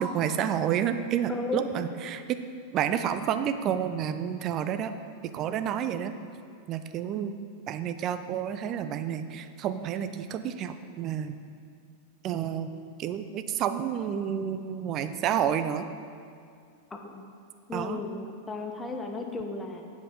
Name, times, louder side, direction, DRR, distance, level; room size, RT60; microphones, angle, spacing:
voice 1, 0.0-2.4 2.7-4.9 5.2-6.1 6.7-7.4 7.7-11.4 12.2-12.7 13.0-15.9 17.7-18.0, right 9 dB, 35° right, 9 dB, 0.4 m, -30 dB
voice 2, 1.3-1.7 16.9-17.2 17.7-19.8, left 3 dB, 15° left, 3 dB, 0.8 m, -35 dB
8.4 x 5.3 x 5.0 m, 2.3 s
figure-of-eight pair, 90°, 0 cm